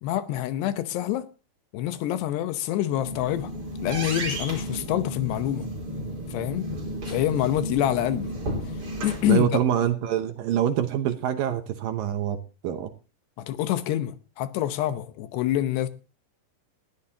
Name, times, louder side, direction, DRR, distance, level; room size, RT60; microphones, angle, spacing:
voice 1, 0.0-1.3 1.7-3.5 3.8-5.7 6.3-6.7 7.1-8.3 9.0-9.6 13.4-15.9, left 13 dB, 80° left, 3.1 m, -26 dB
sound 1, 2.8-9.3, equal, 35° right, 5.3 m, -33 dB
voice 2, 9.3-12.9, right 10 dB, 70° right, 2.3 m, -25 dB
20.0 x 13.0 x 2.8 m
omnidirectional pair, 4.9 m